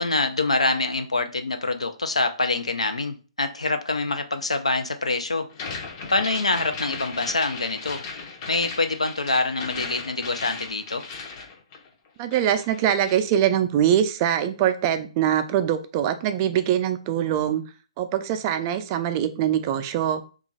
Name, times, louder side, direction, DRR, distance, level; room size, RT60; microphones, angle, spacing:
voice 1, 0.0-5.5 6.1-8.1 8.5-11.0, left 3 dB, 85° left, 7 dB, 0.5 m, -25 dB
sound 1, 5.5-12.1 12.3-13.3, left 4 dB, 35° left, 0.6 m, -37 dB
voice 2, 12.2-17.6 18.0-20.2, right 10 dB, 30° right, 8 dB, 0.4 m, -23 dB
3.0 x 2.4 x 3.7 m, 0.36 s
figure-of-eight pair, 130°, 3 cm